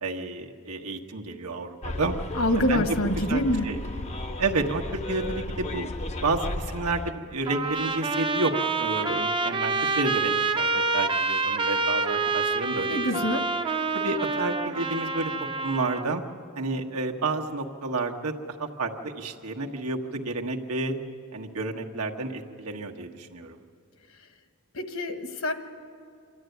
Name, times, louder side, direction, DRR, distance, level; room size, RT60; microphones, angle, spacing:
voice 1, 0.0-2.1 2.6-2.8 3.2-3.8 4.4-5.9 6.2-13.2 13.9-15.3 15.6-16.2 16.5-20.9 21.3-23.6, right 3 dB, 90° right, 1 dB, 1.5 m, -30 dB
Bus, 1.8-7.1, left 1 dB, 30° left, 0.6 m, -34 dB
voice 2, 2.3-3.7 12.9-13.4 24.7-25.5, left 1 dB, 65° left, 7 dB, 1.3 m, -25 dB
Trumpet, 7.5-16.1, right 4 dB, 20° right, 0.5 m, -27 dB
26.0 x 13.0 x 9.3 m, 2.3 s
head